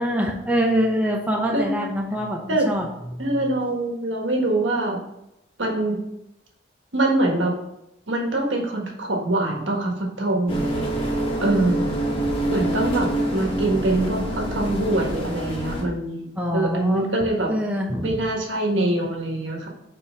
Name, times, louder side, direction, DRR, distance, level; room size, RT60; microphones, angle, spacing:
voice 1, 0.0-2.9 3.1-3.4 16.4-17.0 17.5-18.2, equal, 10° right, -1 dB, 0.8 m, -24 dB
voice 2, 3.2-5.0 5.6-6.0 6.9-7.5 8.1-11.9 12.5-16.2 16.5-17.5 18.0-19.7, right 2 dB, 85° right, 0 dB, 1.6 m, -24 dB
sound 1, 10.5-15.8, right 1 dB, 30° left, 1.3 m, -26 dB
5.3 x 4.4 x 5.1 m, 0.85 s
head